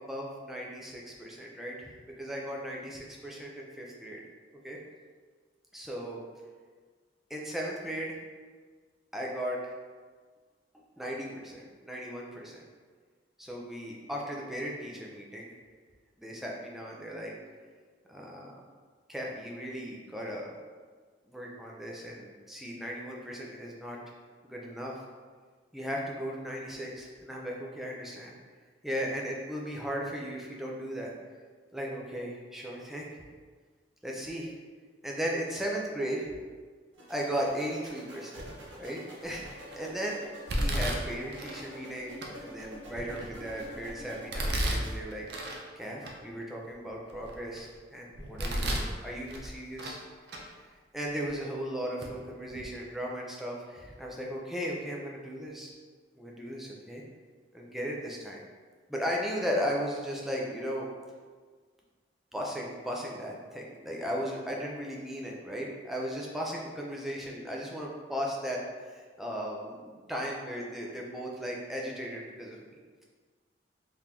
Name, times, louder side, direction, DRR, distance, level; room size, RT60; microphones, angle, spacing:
voice 1, 0.0-4.2 4.6-4.8 5.7-6.2 7.3-8.2 9.1-9.7 11.0-12.6 13.4-15.5 16.2-17.3 18.1-18.5 19.1-20.5 21.3-24.0 24.4-24.9 25.7-28.3 28.8-31.1 31.7-33.2 34.0-34.5 35.0-36.3 37.1-38.4 38.8-40.2 40.5-42.1 42.4-45.3 45.8-50.0 50.4-50.5 50.9-55.7 56.2-57.0 57.5-58.4 58.9-60.9 62.3-72.8, equal, ahead, -3 dB, 0.4 m, -36 dB
sound 1, 36.9-44.9, equal, 80° right, 0.8 m, -48 dB
Domestic sounds home sounds, 38.4-38.8 39.3-39.8 40.5-41.7 42.2-42.3 42.9-43.7 44.3-45.6 46.0-46.1 46.7-47.7 48.1-48.9 49.3-50.0 50.3-50.4 51.3-51.4 52.0-52.1 52.5-52.6, right 1 dB, 60° right, 0.4 m, -33 dB
3.6 x 2.5 x 2.9 m, 1.5 s
head